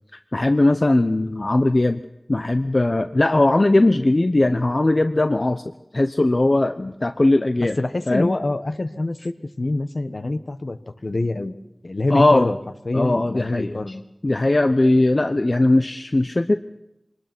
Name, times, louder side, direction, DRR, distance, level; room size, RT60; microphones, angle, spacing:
voice 1, 0.3-2.0 2.3-5.6 5.9-7.8 8.1-8.3 12.1-12.5 12.9-13.8 14.2-16.6, left 2 dB, 50° left, 9 dB, 0.8 m, -19 dB
voice 2, 7.6-10.8 11.0-11.6 11.8-12.6 12.8-14.0, left 2 dB, 65° left, 9 dB, 1.3 m, -25 dB
25.0 x 20.0 x 6.1 m, 0.87 s
wide cardioid pair, 45°, 0 cm